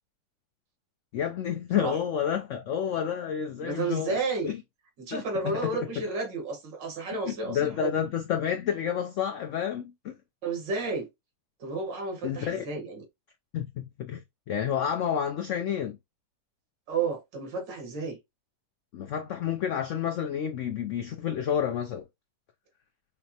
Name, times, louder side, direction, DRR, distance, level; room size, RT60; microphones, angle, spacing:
voice 1, 1.1-4.2 4.4-4.6 5.1-5.8 7.3-10.2 12.2-12.6 13.5-16.0 18.9-22.0, left 8 dB, 75° left, 0.7 m, -30 dB
voice 2, 3.6-4.5 5.0-7.9 10.4-11.1 11.6-13.0 16.9-18.2, right 4 dB, 90° right, 2.1 m, -32 dB
5.5 x 2.1 x 2.8 m
omnidirectional pair, 1.9 m